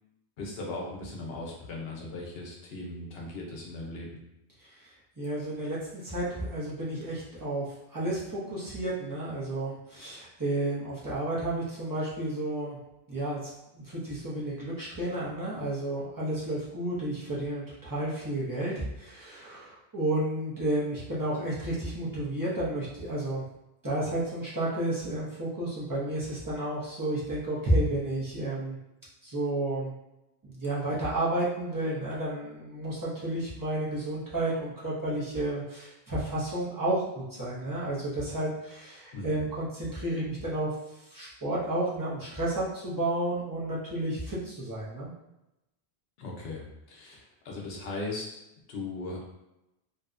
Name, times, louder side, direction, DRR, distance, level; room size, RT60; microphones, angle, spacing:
voice 1, 0.4-4.1 39.1-39.4 46.2-48.4 48.7-49.2, left 2 dB, 70° left, -2 dB, 0.8 m, -38 dB
voice 2, 4.8-7.6 7.9-12.8 13.1-23.4 23.8-28.8 29.2-29.9 30.4-40.7 41.1-45.1, right 1 dB, 25° right, -8 dB, 0.5 m, -31 dB
2.6 x 2.1 x 2.4 m, 0.92 s
omnidirectional pair, 1.1 m